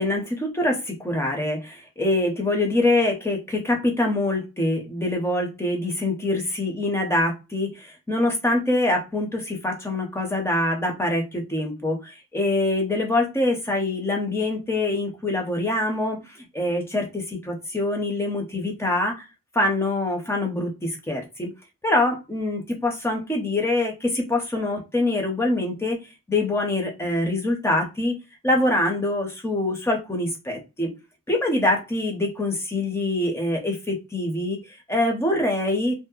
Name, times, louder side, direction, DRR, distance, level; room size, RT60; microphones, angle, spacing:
voice 1, 0.0-16.2 16.5-19.2 19.5-21.5 21.8-26.0 26.3-28.2 28.4-30.9 31.3-34.6 34.9-35.9, left 2 dB, 10° left, 2 dB, 0.6 m, -24 dB
2.7 x 2.0 x 2.3 m, 0.27 s
head